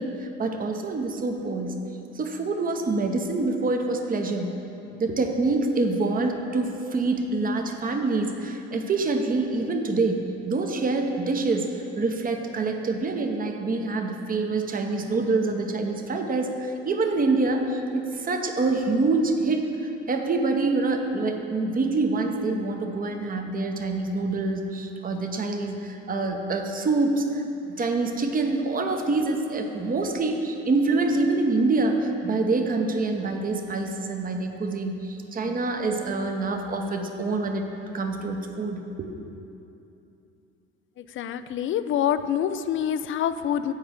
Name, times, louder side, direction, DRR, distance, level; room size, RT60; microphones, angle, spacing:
voice 1, 0.0-1.8 2.1-4.5 5.0-27.4 27.8-37.7 37.9-39.1, right 3 dB, 25° right, 3 dB, 0.9 m, -26 dB
voice 2, 41.2-43.7, left 9 dB, 40° left, 12 dB, 0.4 m, -26 dB
7.4 x 4.8 x 6.4 m, 2.8 s
hypercardioid pair, 60°, 34 cm